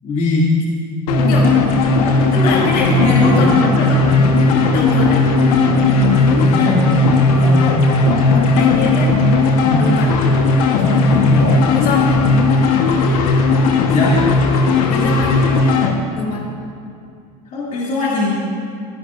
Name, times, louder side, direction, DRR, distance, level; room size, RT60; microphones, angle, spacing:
voice 1, 0.0-0.5 2.3-3.5 6.3-7.0 7.4-7.7 8.2-8.7 9.6-9.9 10.8-11.6 13.9-14.2 17.5-18.4, left 2 dB, 45° left, -6 dB, 2.8 m, -21 dB
sound 1, 1.1-15.9, left 3 dB, 90° left, 1.3 m, -15 dB
voice 2, 2.3-4.2 4.7-5.3 8.5-9.2 9.8-10.1 11.4-12.2 14.9-15.4 16.1-16.4, left 3 dB, 70° left, -2 dB, 3.6 m, -23 dB
sound 2, 2.8-8.2, right 6 dB, 75° right, 0.8 m, -24 dB
22.5 x 12.0 x 2.6 m, 2.4 s
supercardioid pair, 115°, 18 cm